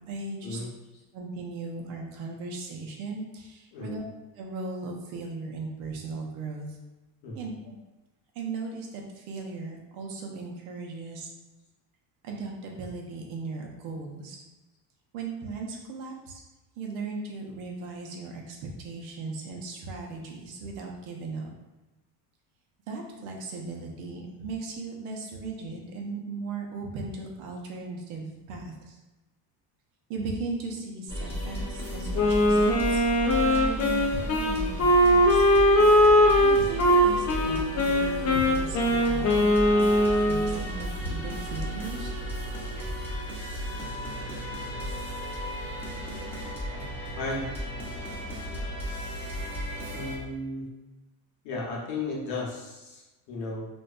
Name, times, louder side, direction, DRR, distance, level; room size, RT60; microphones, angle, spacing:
voice 1, 0.1-0.6 1.1-4.0 4.4-6.7 7.3-7.8 8.4-11.3 12.2-14.4 15.1-16.4 16.8-21.5 22.9-28.7 30.1-33.0 33.4-35.4 36.4-42.1, right 3 dB, 70° right, 0 dB, 0.7 m, -37 dB
voice 2, 3.7-4.0 7.2-7.5 47.2-47.5 49.9-50.7 51.4-53.7, left 2 dB, 80° left, -3 dB, 0.9 m, -35 dB
sound 1, 31.1-50.2, equal, 5° left, 0.8 m, -34 dB
Wind instrument woodwind instrument, 32.1-40.6, equal, 35° left, 0.4 m, -21 dB
2.5 x 2.2 x 2.4 m, 1.1 s
supercardioid pair, 90°, 49 cm